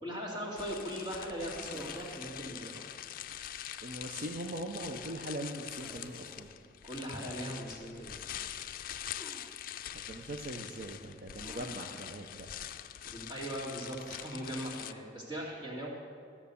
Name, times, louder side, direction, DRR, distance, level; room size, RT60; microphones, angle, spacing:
voice 1, 0.0-2.9 6.8-8.2 13.0-15.9, equal, 25° right, -4 dB, 2.4 m, -39 dB
sound 1, 0.6-14.9, left 10 dB, 50° left, 0.4 m, -44 dB
sound 2, 1.7-2.5 5.8-6.6 9.2-9.6 11.4-12.1 14.0-14.2, left 1 dB, ahead, 0.9 m, -53 dB
voice 2, 3.8-6.5 9.9-12.5, right 1 dB, 50° right, 2 dB, 0.8 m, -41 dB
14.0 x 7.3 x 7.0 m, 2.3 s
head